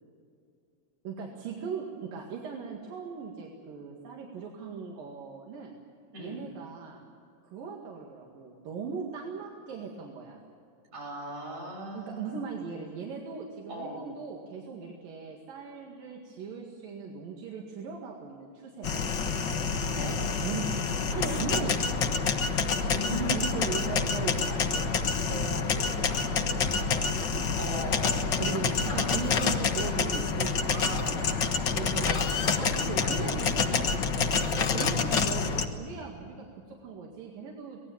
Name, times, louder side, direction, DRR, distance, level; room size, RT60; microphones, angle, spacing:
voice 1, 1.0-5.7 6.2-7.0 7.4-10.4 11.9-19.3 20.4-20.7 21.1-22.2 23.3-24.9 25.3-27.6 28.4-31.1 31.8-32.2 32.6-37.8, right 5 dB, 80° right, -1 dB, 3.8 m, -39 dB
voice 2, 6.1-6.4 10.9-12.4 13.7-14.0 19.9-20.2 22.8-23.8 27.5-29.2 30.7-33.4 33.7-33.8 34.2-35.2, right 1 dB, 55° right, -1 dB, 8.1 m, -39 dB
sound 1, 18.8-35.7, left 5 dB, 55° left, 1.2 m, -28 dB
25.5 x 19.0 x 7.3 m, 2.4 s
omnidirectional pair, 3.9 m